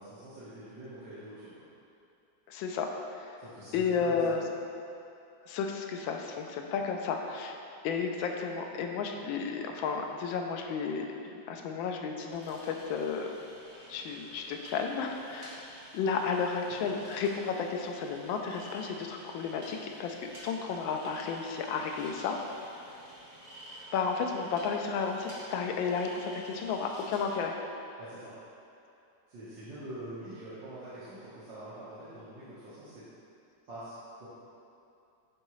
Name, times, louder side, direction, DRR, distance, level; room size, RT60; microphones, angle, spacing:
voice 1, 0.0-1.6 3.4-4.2 16.6-16.9 28.0-28.3 29.3-33.0 33.7-34.3, right 1 dB, 75° right, -13 dB, 2.0 m, -45 dB
voice 2, 2.5-3.4 3.7-4.5 5.5-7.6 7.8-13.3 13.9-15.7 15.9-22.4 23.9-27.5, left 5 dB, 85° left, 3 dB, 1.3 m, -33 dB
sound 1, 12.3-27.4, equal, 30° right, 1.6 m, -50 dB
10.5 x 3.6 x 3.1 m, 2.7 s
omnidirectional pair, 2.1 m